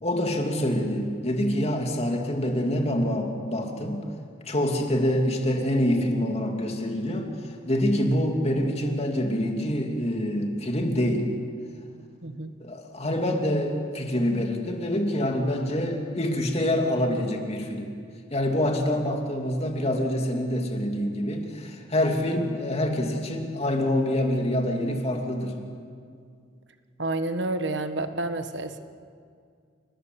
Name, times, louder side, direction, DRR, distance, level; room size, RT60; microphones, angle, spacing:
voice 1, 0.0-4.1 4.4-7.3 7.6-11.3 12.6-17.9 18.3-25.6, left 1 dB, 30° left, 2 dB, 2.9 m, -26 dB
voice 2, 12.2-12.5 27.0-28.8, right 2 dB, 65° right, 9 dB, 1.5 m, -29 dB
29.5 x 19.5 x 8.2 m, 2.2 s
head